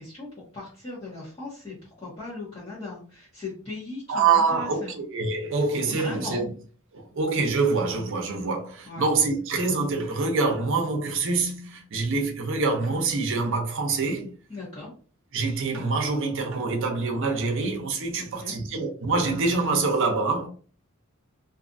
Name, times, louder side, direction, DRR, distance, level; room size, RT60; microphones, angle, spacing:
voice 1, 0.0-5.0 5.9-6.4 8.8-9.1 14.5-14.9 18.2-18.5, left 3 dB, 25° left, 1.0 m, -38 dB
voice 2, 4.1-6.5 6.9-14.3 15.3-20.5, right 4 dB, 65° right, 0.6 m, -25 dB
2.6 x 2.4 x 2.5 m
head